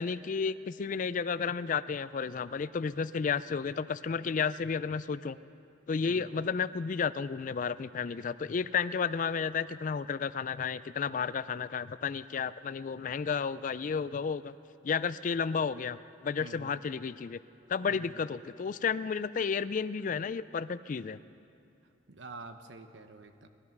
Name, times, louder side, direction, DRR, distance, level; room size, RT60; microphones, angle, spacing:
voice 1, 0.0-5.4 5.9-14.6 14.8-17.4 17.7-21.2, left 6 dB, 45° left, 16 dB, 0.3 m, -32 dB
voice 2, 16.4-16.7 17.9-18.1 22.1-23.5, right 3 dB, 75° right, 8 dB, 1.0 m, -47 dB
19.0 x 12.5 x 6.0 m, 2.6 s
head